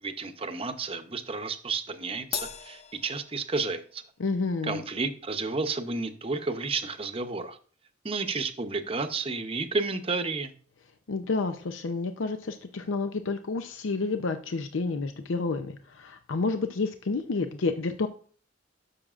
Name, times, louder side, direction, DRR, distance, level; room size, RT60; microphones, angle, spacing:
voice 1, 0.0-4.0 4.6-7.6 8.0-10.5, right 3 dB, 30° right, 0.7 m, -31 dB
Crash cymbal, 2.3-4.0, left 8 dB, 35° left, 0.4 m, -38 dB
voice 2, 4.2-4.8 11.1-18.1, left 3 dB, 90° left, 0.6 m, -30 dB
12.0 x 6.4 x 2.5 m
head